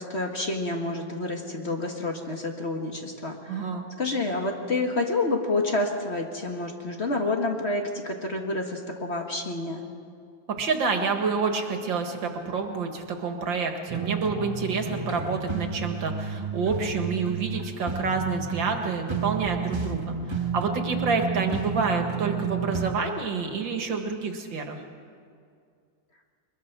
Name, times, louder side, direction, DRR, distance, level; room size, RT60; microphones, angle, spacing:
voice 1, 0.0-3.6 4.0-9.8, left 2 dB, 35° left, 2 dB, 1.8 m, -29 dB
voice 2, 3.5-3.8 10.6-20.2 20.5-24.8, right 4 dB, 75° right, 4 dB, 2.4 m, -28 dB
sound 1, 13.9-22.9, right 5 dB, 25° right, 0.6 m, -31 dB
22.0 x 21.5 x 6.0 m, 2.3 s
omnidirectional pair, 2.1 m